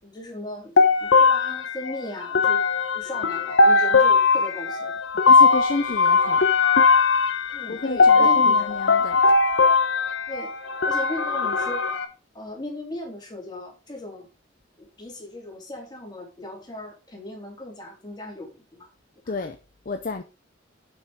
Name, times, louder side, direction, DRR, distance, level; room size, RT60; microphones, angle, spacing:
voice 1, 0.0-2.6 2.9-4.9 7.5-8.6 10.3-10.5 10.8-11.8 12.3-14.3 14.8-18.9, left 1 dB, 25° left, 3.3 m, -37 dB
sound 1, 0.8-12.0, left 4 dB, 85° left, 1.0 m, -19 dB
voice 2, 5.3-6.4 7.7-9.2 19.3-19.6 19.9-20.2, left 3 dB, 45° left, 0.6 m, -30 dB
7.2 x 5.9 x 5.0 m
head